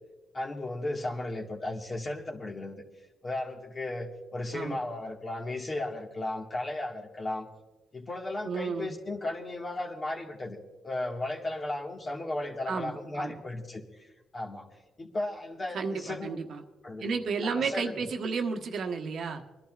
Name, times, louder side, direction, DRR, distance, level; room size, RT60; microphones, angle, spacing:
voice 1, 0.3-2.8 3.2-7.5 7.9-10.6 10.8-14.1 14.3-14.7 15.0-16.4 16.8-17.0 17.4-18.0, left 2 dB, 30° left, 1 dB, 1.8 m, -35 dB
voice 2, 8.4-8.9 12.7-13.4 15.7-16.6 17.0-19.4, right 5 dB, 65° right, 4 dB, 1.2 m, -32 dB
29.0 x 11.5 x 2.5 m, 1.2 s
cardioid pair, 90°, 0 cm